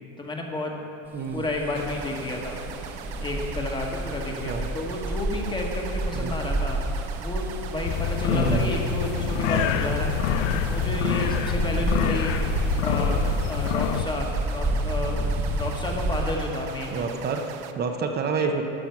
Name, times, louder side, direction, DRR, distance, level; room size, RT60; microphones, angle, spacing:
voice 1, 0.2-0.9 1.3-2.6 3.1-6.8 7.2-10.1 10.6-15.2 15.5-17.1 18.4-18.5, left 1 dB, 10° left, 0 dB, 1.4 m, -31 dB
voice 2, 1.1-1.4 4.5-4.7 6.1-6.3 8.3-8.8 16.9-18.6, right 5 dB, 25° right, 5 dB, 0.8 m, -28 dB
Bus, 1.2-16.4, right 1 dB, 5° right, 1.0 m, -30 dB
sound 1, 1.7-17.7, right 9 dB, 65° right, 0.8 m, -41 dB
sound 2, 7.8-14.0, left 8 dB, 75° left, 0.7 m, -26 dB
13.5 x 6.1 x 5.8 m, 2.7 s
supercardioid pair, 125°, 37 cm